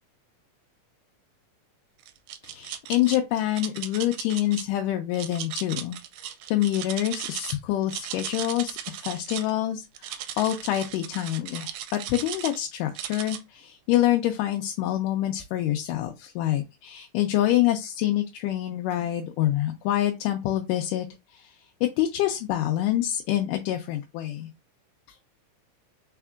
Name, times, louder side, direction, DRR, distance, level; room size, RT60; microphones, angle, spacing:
sound 1, 2.0-3.2 3.5-4.6 5.1-7.6 7.8-9.5 9.9-12.6 12.9-13.4, right 11 dB, 80° right, 2.1 m, -36 dB
voice 1, 2.4-21.1 21.3-21.5 21.8-24.5, left 13 dB, 85° left, 2.2 m, -26 dB
4.7 x 4.2 x 2.3 m
omnidirectional pair, 3.8 m